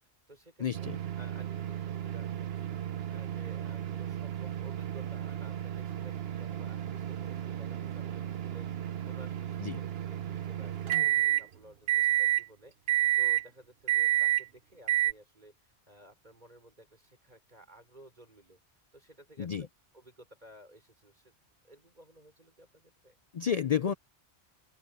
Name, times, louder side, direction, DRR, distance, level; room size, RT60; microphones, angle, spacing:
voice 1, 0.0-0.7 1.2-2.7 3.1-18.6 18.9-19.7 19.9-21.4 21.6-23.2, right 1 dB, 40° right, 5.6 m, -56 dB
voice 2, 0.6-1.0 9.6-9.8 19.4-19.7 23.3-23.9, left 8 dB, 50° left, 0.5 m, -30 dB
sound 1, 0.7-11.4 11.9-12.4 12.9-13.4 13.9-14.4 14.9-15.1, right 13 dB, 65° right, 1.0 m, -31 dB
open air
omnidirectional pair, 1.1 m